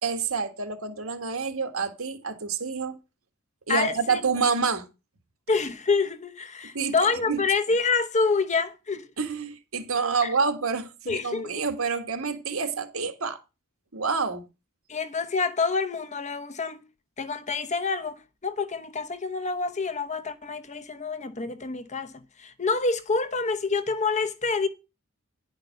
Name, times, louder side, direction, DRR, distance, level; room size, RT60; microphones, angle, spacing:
voice 1, 0.0-3.0 3.7-4.9 6.7-6.9 7.3-7.4 9.2-13.4 13.9-14.4, right 5 dB, 70° right, 1.7 m, -28 dB
voice 2, 3.7-4.2 5.5-9.1 10.2-10.3 11.1-11.6 14.9-16.8 17.2-24.7, left 4 dB, 35° left, 0.9 m, -27 dB
10.5 x 5.3 x 5.8 m
head